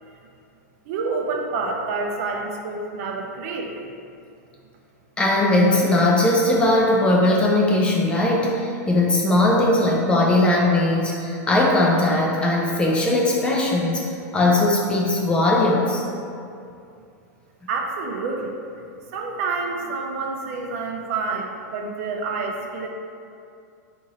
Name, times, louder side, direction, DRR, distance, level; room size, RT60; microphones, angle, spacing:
voice 1, 0.9-3.7 17.7-18.6 19.1-22.9, right 4 dB, 55° right, 2 dB, 0.4 m, -28 dB
voice 2, 5.2-14.0 14.3-16.0, left 2 dB, 10° left, -3 dB, 0.3 m, -19 dB
2.9 x 2.6 x 3.8 m, 2.5 s
supercardioid pair, 145°, 10 cm